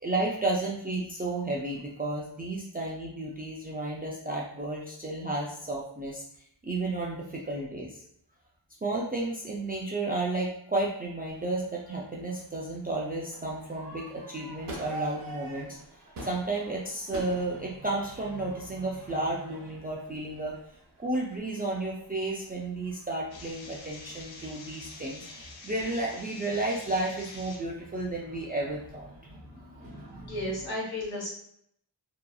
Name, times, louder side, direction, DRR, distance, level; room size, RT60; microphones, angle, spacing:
voice 1, 0.0-6.2 6.6-8.0 8.8-15.7 16.2-20.5 21.0-30.4, right 2 dB, 20° right, -4 dB, 0.3 m, -32 dB
Crowd / Fireworks, 11.3-30.3, right 2 dB, 50° right, 0.7 m, -47 dB
sound 1, 23.3-27.6, left 3 dB, 90° left, 0.6 m, -47 dB
voice 2, 30.2-31.3, left 1 dB, 55° left, -5 dB, 1.5 m, -33 dB
2.8 x 2.3 x 2.2 m, 0.69 s
wide cardioid pair, 100°, 44 cm